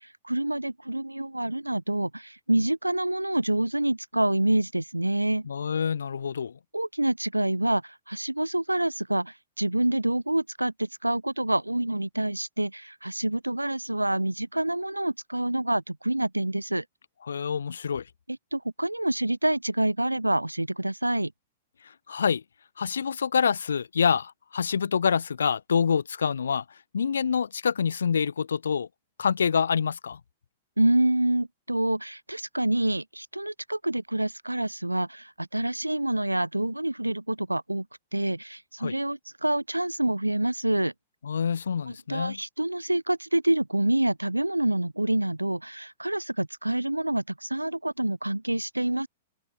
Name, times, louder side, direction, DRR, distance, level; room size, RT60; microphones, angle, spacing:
voice 1, 0.2-5.5 6.7-16.8 18.5-21.3 30.8-37.9 38.1-40.9 41.9-49.1, right 1 dB, 90° right, 2.6 m, -27 dB
voice 2, 5.5-6.5 17.3-18.0 22.1-22.4 22.8-26.6 26.9-28.9 29.2-30.2 38.8-38.9 41.2-42.4, left 6 dB, 70° left, 3.5 m, -26 dB
open air
figure-of-eight pair, 105°, 0 cm